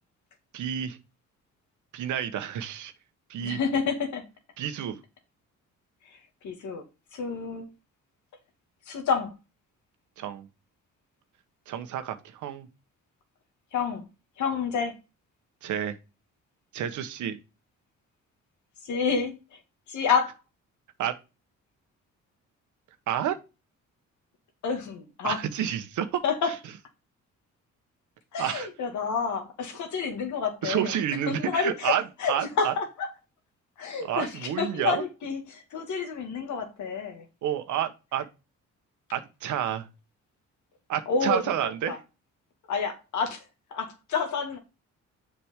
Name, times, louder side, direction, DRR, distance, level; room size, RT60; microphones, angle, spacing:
voice 1, 0.5-1.0 1.9-2.9 3.3-3.6 4.6-5.0 10.2-10.5 11.7-12.7 15.6-16.0 16.7-17.4 21.0-21.1 23.1-23.4 25.2-26.5 28.4-28.7 30.6-32.0 32.3-32.7 34.0-35.0 37.4-38.3 39.1-39.9 40.9-42.0, right 10 dB, 80° right, 1.2 m, -29 dB
voice 2, 3.4-4.2 6.4-6.8 7.1-7.7 8.9-9.3 13.7-14.0 14.4-14.9 18.8-19.3 19.9-20.3 24.6-25.4 26.2-26.5 28.3-30.9 31.3-33.1 33.8-37.2 41.1-42.0 42.7-43.4 43.7-44.6, left 5 dB, 75° left, 2.0 m, -29 dB
7.2 x 5.0 x 3.7 m
cardioid pair, 90°, 30 cm